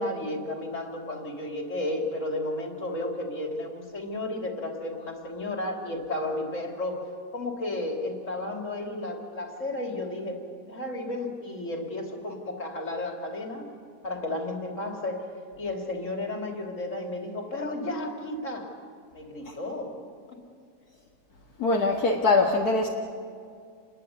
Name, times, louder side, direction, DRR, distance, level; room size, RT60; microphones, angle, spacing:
voice 1, 0.0-7.1 7.3-13.7 14.0-15.3 15.6-18.7 19.1-19.9, left 1 dB, 50° left, 2 dB, 3.6 m, -33 dB
voice 2, 21.6-22.9, left 3 dB, 70° left, -1 dB, 2.3 m, -23 dB
29.0 x 21.5 x 8.4 m, 2.3 s
omnidirectional pair, 1.7 m